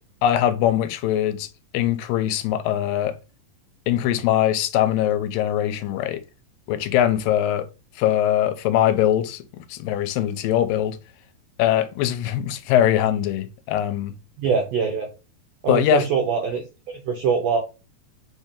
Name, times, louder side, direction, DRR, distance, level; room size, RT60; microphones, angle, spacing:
voice 1, 0.2-1.5 1.7-3.2 3.9-6.2 6.7-7.7 8.0-11.0 11.6-14.1 15.7-16.1, left 11 dB, 85° left, 2.3 m, -22 dB
voice 2, 14.4-15.1 15.6-17.6, right 5 dB, 80° right, 1.5 m, -23 dB
5.5 x 2.7 x 3.6 m
omnidirectional pair, 3.9 m